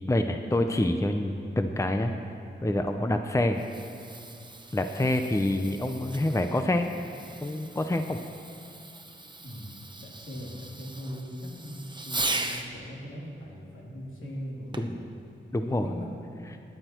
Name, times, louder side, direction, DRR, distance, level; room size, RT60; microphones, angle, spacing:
voice 1, 0.1-2.1 2.6-3.6 4.7-6.9 7.4-8.2 14.8-14.9 15.5-15.9, left 1 dB, 15° left, 6 dB, 0.7 m, -26 dB
Fireworks, 3.4-12.7 14.7-15.1 15.8-15.9, right 2 dB, 20° right, 0.9 m, -39 dB
voice 2, 9.4-9.7 10.0-15.1 15.5-16.1, equal, 75° left, -4 dB, 2.9 m, -40 dB
17.0 x 10.0 x 4.5 m, 2.6 s
wide cardioid pair, 75°, 20 cm